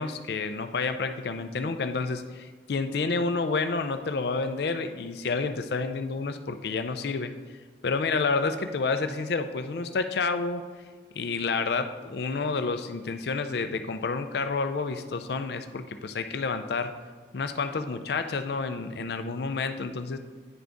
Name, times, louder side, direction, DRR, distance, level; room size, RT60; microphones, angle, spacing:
voice 1, 0.0-7.3 7.8-10.6 11.2-16.9 17.3-20.2, left 4 dB, 60° left, 9 dB, 0.4 m, -29 dB
9.8 x 3.8 x 3.5 m, 1.5 s
head